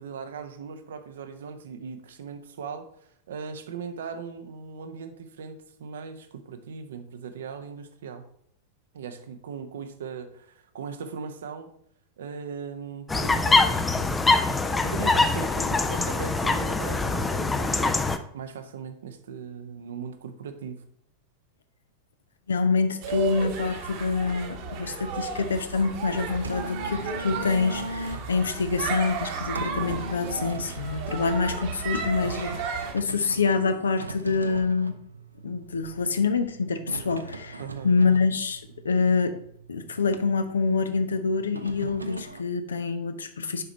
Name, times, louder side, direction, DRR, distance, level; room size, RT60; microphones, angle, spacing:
voice 1, 0.0-2.9 3.3-8.2 8.9-11.7 12.2-14.2 14.8-18.0 18.3-20.8 37.6-37.9, right 6 dB, 60° right, 8 dB, 0.8 m, -38 dB
sound 1, 13.1-18.2, left 3 dB, 10° left, 0.5 m, -23 dB
voice 2, 22.5-35.0 35.4-39.3 39.7-43.6, left 4 dB, 70° left, 9 dB, 0.7 m, -26 dB
sound 2, 23.0-32.9, right 5 dB, 45° right, 1.3 m, -33 dB
sound 3, 26.3-42.4, right 2 dB, 80° right, 0.5 m, -40 dB
6.8 x 5.0 x 4.3 m, 0.68 s
figure-of-eight pair, 90°, 0 cm